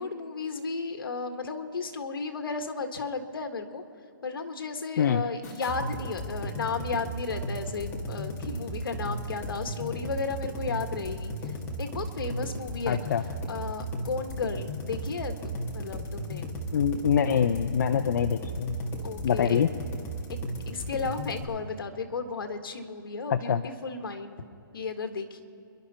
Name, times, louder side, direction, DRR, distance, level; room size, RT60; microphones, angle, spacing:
voice 1, 0.0-3.8 4.2-13.0 13.5-15.3 15.7-16.5 19.0-19.6 20.6-24.4 24.7-25.4, left 4 dB, 75° left, 6 dB, 1.8 m, -34 dB
sound 1, 5.4-21.4, right 1 dB, 20° left, 2.0 m, -35 dB
voice 2, 12.9-13.2 16.7-18.8 19.2-19.7 23.3-23.6, left 8 dB, 55° left, 8 dB, 0.6 m, -25 dB
28.5 x 11.5 x 4.4 m, 2.7 s
hypercardioid pair, 160°, 12 cm